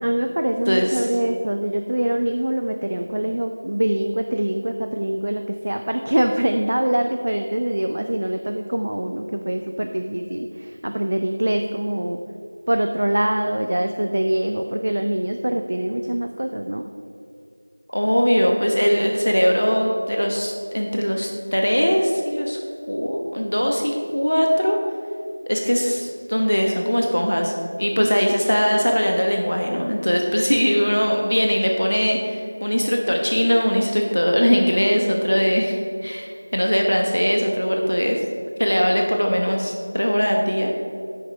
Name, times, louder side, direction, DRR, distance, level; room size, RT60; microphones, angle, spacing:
voice 1, 0.0-12.2 12.7-16.9 28.0-28.1, right 1 dB, 35° right, 5 dB, 0.4 m, -24 dB
voice 2, 0.7-1.2 17.9-22.6 22.9-24.8 25.5-38.2 38.6-40.7, equal, 80° left, 1 dB, 1.1 m, -21 dB
9.6 x 6.5 x 4.8 m, 2.5 s
figure-of-eight pair, 180°, 0 cm